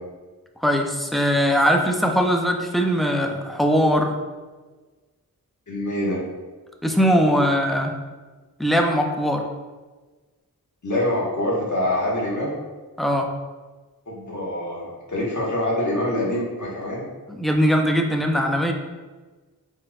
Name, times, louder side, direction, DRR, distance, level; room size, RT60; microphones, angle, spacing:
voice 1, 0.6-4.2 6.8-8.0 8.6-9.4 13.0-13.3 17.3-18.7, equal, ahead, 2 dB, 0.5 m, -20 dB
voice 2, 5.7-6.2 10.8-12.5 14.1-17.0, left 1 dB, 55° left, -5 dB, 1.5 m, -25 dB
5.0 x 4.2 x 2.4 m, 1.3 s
wide cardioid pair, 65°, 36 cm